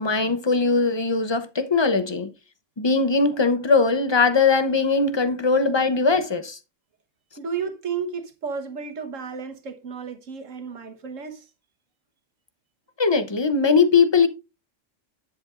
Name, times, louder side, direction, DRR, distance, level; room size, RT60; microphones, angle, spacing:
voice 1, 0.0-2.3 2.8-6.6 13.0-14.3, left 4 dB, 25° left, 0.6 m, -20 dB
voice 2, 7.4-11.5, right 6 dB, 80° right, 1.6 m, -32 dB
10.5 x 7.7 x 2.5 m
omnidirectional pair, 1.3 m